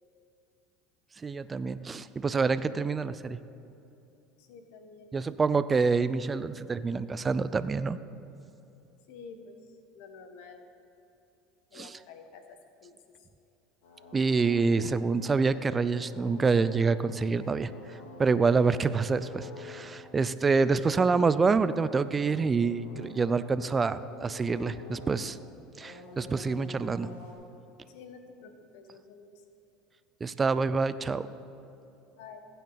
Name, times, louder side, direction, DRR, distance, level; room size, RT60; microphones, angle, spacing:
voice 1, 1.2-3.4 5.1-8.0 11.7-11.9 14.1-25.4 25.8-27.1 30.2-31.3, right 4 dB, 25° right, 14 dB, 0.4 m, -27 dB
voice 2, 4.4-5.1 9.1-10.6 11.7-13.3 27.9-29.4 32.1-32.4, left 5 dB, 75° left, 6 dB, 1.2 m, -50 dB
sound 1, 13.8-25.3 25.8-27.3, left 2 dB, 90° left, 2.1 m, -48 dB
15.5 x 9.3 x 4.0 m, 2.9 s
supercardioid pair, 100°, 0 cm